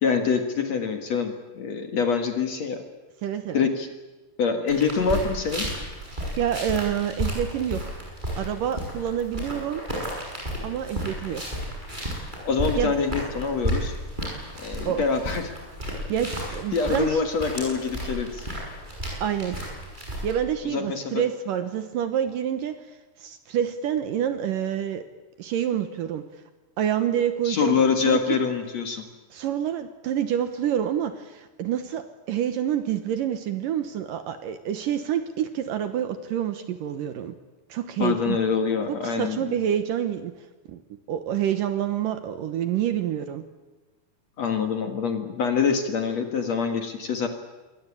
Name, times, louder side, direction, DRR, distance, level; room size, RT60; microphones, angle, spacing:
voice 1, 0.0-2.8 3.5-3.9 4.4-5.7 12.4-13.9 14.6-15.6 16.7-18.5 20.6-21.2 27.4-29.1 38.0-39.6 44.4-47.3, left 5 dB, 50° left, 6 dB, 2.5 m, -25 dB
voice 2, 3.2-3.7 6.1-7.8 8.4-9.8 10.6-11.4 12.8-12.9 14.8-15.0 16.1-17.2 19.2-19.6 20.2-22.9 23.2-25.0 25.4-26.2 26.8-28.4 29.3-37.3 37.7-38.4 38.9-40.3 40.7-40.8 41.1-43.4, right 9 dB, 70° right, 10 dB, 2.4 m, -27 dB
sound 1, 4.7-20.3, equal, 10° right, 7.7 m, -33 dB
27.0 x 21.5 x 8.6 m, 1.2 s
omnidirectional pair, 4.7 m